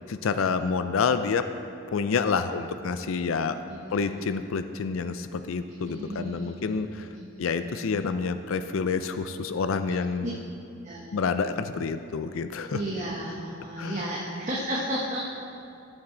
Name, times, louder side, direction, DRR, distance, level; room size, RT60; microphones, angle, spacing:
voice 1, 0.1-1.5 1.9-3.6 3.9-7.1 7.4-10.4 11.1-12.8 13.8-14.0, left 5 dB, 85° left, 10 dB, 0.4 m, -28 dB
voice 2, 3.6-4.3 5.8-6.8 7.1-7.8 10.2-10.3 10.8-11.1 12.7-15.3, right 1 dB, 35° right, -4 dB, 1.0 m, -34 dB
15.5 x 7.4 x 3.8 m, 2.5 s
head